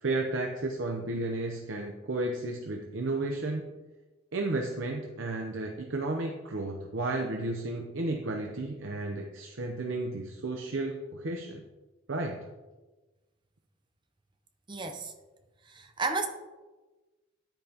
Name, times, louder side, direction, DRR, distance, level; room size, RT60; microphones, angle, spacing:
voice 1, 0.0-3.6 4.3-11.6 12.1-12.4, right 2 dB, 70° right, 2 dB, 0.7 m, -33 dB
voice 2, 14.7-15.1 15.6-16.3, right 3 dB, 20° right, 6 dB, 0.7 m, -32 dB
10.0 x 8.8 x 2.9 m, 1.2 s
head